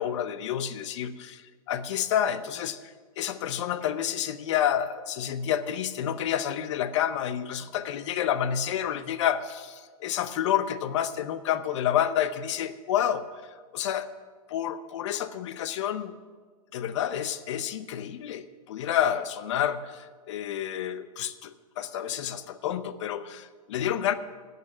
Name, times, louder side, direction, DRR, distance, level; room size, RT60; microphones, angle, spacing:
voice 1, 0.0-14.1 14.5-16.2 16.7-24.1, left 10 dB, 50° left, 13 dB, 0.7 m, -29 dB
11.5 x 6.9 x 8.6 m, 1.5 s
hypercardioid pair, 160°, 19 cm